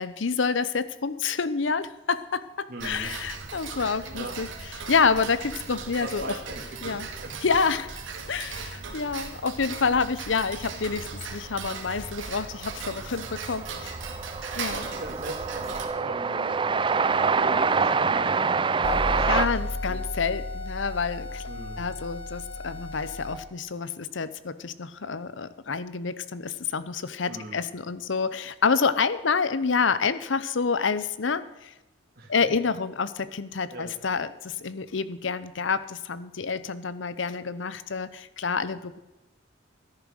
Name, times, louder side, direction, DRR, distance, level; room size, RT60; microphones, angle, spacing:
voice 1, 0.0-4.5 4.9-6.4 6.8-7.1 7.4-7.9 8.3-13.9 14.6-14.9 19.3-21.4 21.8-31.7 32.3-39.0, left 5 dB, 75° left, 15 dB, 0.7 m, -28 dB
voice 2, 2.7-3.1 4.1-4.4 4.6-4.8 6.0-7.3 14.7-16.6 17.0-18.4 18.9-20.0 21.5-21.8 27.3-27.6 32.2-32.3 33.7-33.9, right 2 dB, 50° right, -1 dB, 2.2 m, -40 dB
Tick-tock, 2.8-15.9, right 4 dB, 85° right, 2.2 m, -38 dB
Train, 12.0-12.1 12.3-19.5, right 5 dB, 25° right, 0.5 m, -26 dB
sound 1, 18.8-23.3, left 2 dB, 25° left, 4.4 m, -33 dB
13.5 x 10.5 x 6.5 m, 1.0 s
head